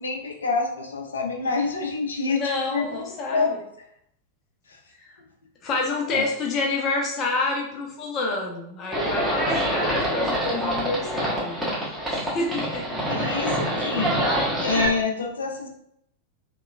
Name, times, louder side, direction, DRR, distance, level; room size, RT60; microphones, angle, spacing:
voice 1, 0.0-2.4 2.7-3.1 3.3-3.5 4.7-4.8 6.1-6.2 13.1-14.2 14.6-15.7, left 4 dB, 70° left, 2 dB, 0.5 m, -27 dB
voice 2, 2.3-3.6 5.0-5.1 5.6-11.6 12.1-13.1, left 3 dB, 30° left, -1 dB, 0.7 m, -28 dB
Livestock farm animals working animals, 8.9-14.9, right 1 dB, 5° right, 1.1 m, -26 dB
3.0 x 2.9 x 2.4 m, 0.73 s
figure-of-eight pair, 90°, 0 cm